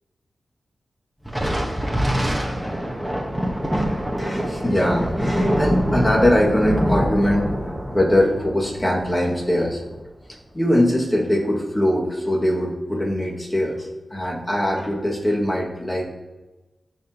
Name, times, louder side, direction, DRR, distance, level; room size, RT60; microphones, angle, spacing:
Thunder, 1.3-10.0, equal, 5° right, 1.5 m, -25 dB
voice 1, 4.2-7.5 7.9-9.8 10.5-16.1, left 1 dB, 25° left, -3 dB, 2.3 m, -21 dB
13.0 x 4.8 x 3.1 m, 1.2 s
cardioid pair, 45°, 0 cm